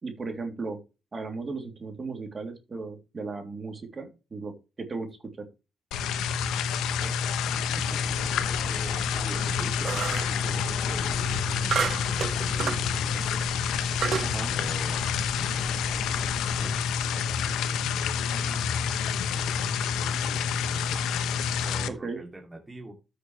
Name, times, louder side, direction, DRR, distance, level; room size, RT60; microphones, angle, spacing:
voice 1, 0.0-0.8 1.1-5.1 5.4-5.5 14.2-14.5 21.9-22.2, right 3 dB, 35° right, 4 dB, 3.0 m, -36 dB
sound 1, 5.9-21.9, left 7 dB, 85° left, 1.0 m, -28 dB
voice 2, 7.5-12.0 12.3-16.7 17.1-20.8 21.1-22.9, right 1 dB, 15° right, 0 dB, 2.5 m, -45 dB
sound 2, 8.0-16.8, left 5 dB, 50° left, 1.6 m, -42 dB
sound 3, 9.8-10.4 11.7-12.9 13.4-13.5 14.0-14.3, right 7 dB, 55° right, 0.5 m, -30 dB
13.0 x 6.8 x 3.2 m, 0.30 s
cardioid pair, 90°, 0 cm